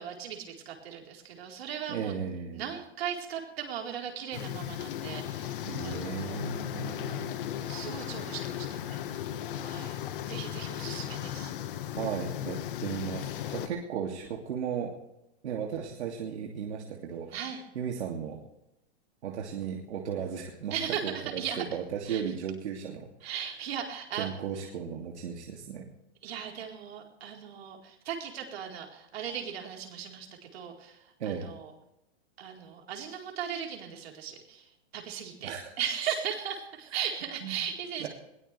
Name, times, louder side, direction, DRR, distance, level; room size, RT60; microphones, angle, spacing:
voice 1, 0.0-2.2 2.5-6.4 7.7-9.0 9.6-10.0 10.3-11.5 17.3-17.6 20.7-21.6 22.1-22.2 23.2-24.3 26.2-31.0 31.2-31.7 32.4-34.7 34.9-38.1, right 8 dB, 65° right, 1 dB, 4.4 m, -37 dB
voice 2, 1.9-2.7 5.7-7.4 12.0-14.9 15.4-17.4 17.7-18.4 19.2-20.8 21.0-23.4 24.2-25.9 31.2-31.5 35.4-35.7 37.4-37.7 38.0-38.1, right 7 dB, 85° right, 0 dB, 2.8 m, -35 dB
sound 1, 4.3-13.7, left 11 dB, 55° left, 1.6 m, -36 dB
21.5 x 17.5 x 3.5 m, 0.85 s
supercardioid pair, 170°, 33 cm